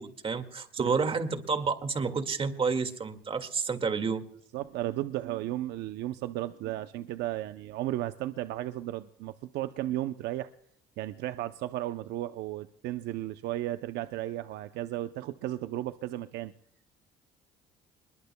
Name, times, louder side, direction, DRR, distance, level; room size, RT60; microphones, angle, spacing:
voice 1, 0.0-4.2, right 5 dB, 35° right, 9 dB, 2.0 m, -30 dB
voice 2, 4.5-10.5 11.0-16.5, right 14 dB, 80° right, 10 dB, 0.6 m, -34 dB
26.0 x 21.5 x 2.2 m, 0.67 s
cardioid pair, 110°, 17 cm